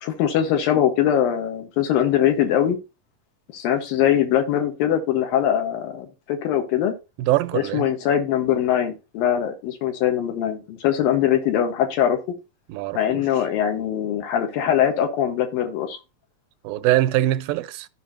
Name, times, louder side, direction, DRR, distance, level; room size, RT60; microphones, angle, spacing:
voice 1, 0.0-2.8 3.5-6.9 7.5-12.2 12.9-16.0, left 10 dB, 90° left, 3.4 m, -22 dB
voice 2, 7.2-7.9 12.7-13.3 16.6-17.9, right 15 dB, 90° right, 2.4 m, -23 dB
15.0 x 5.7 x 2.9 m
omnidirectional pair, 4.0 m